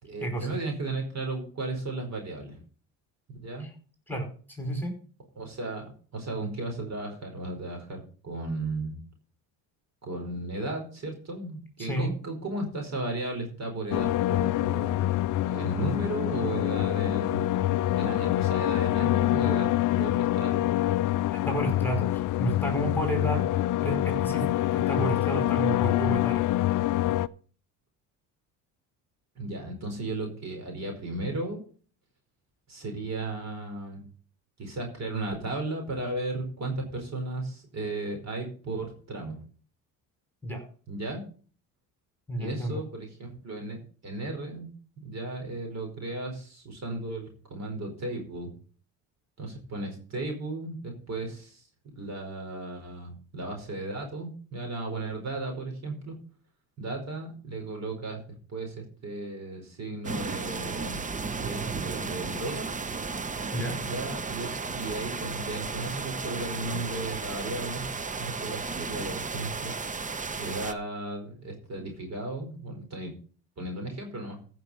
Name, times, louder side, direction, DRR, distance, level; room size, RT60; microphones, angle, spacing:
voice 1, 0.0-2.6 3.3-3.7 5.4-9.0 10.0-15.1 15.5-19.7 20.0-20.6 29.3-31.6 32.7-34.0 34.6-39.4 40.9-41.2 42.4-44.7 45.0-48.5 49.4-51.6 51.9-56.1 56.8-58.2 58.5-61.0 61.4-62.7 63.8-67.9 68.2-69.7 70.4-73.1 73.6-74.4, right 2 dB, 40° right, 2 dB, 4.7 m, -35 dB
voice 2, 4.1-5.0 11.8-12.1 21.4-23.5 23.8-26.4 40.4-40.6 42.3-42.8 63.5-63.8, right 1 dB, 5° left, 3 dB, 5.0 m, -31 dB
sound 1, 13.9-27.3, left 15 dB, 50° left, 0.5 m, -26 dB
sound 2, 60.0-70.7, right 4 dB, 20° right, 0.8 m, -34 dB
15.0 x 6.2 x 5.5 m, 0.42 s
supercardioid pair, 80°, 41 cm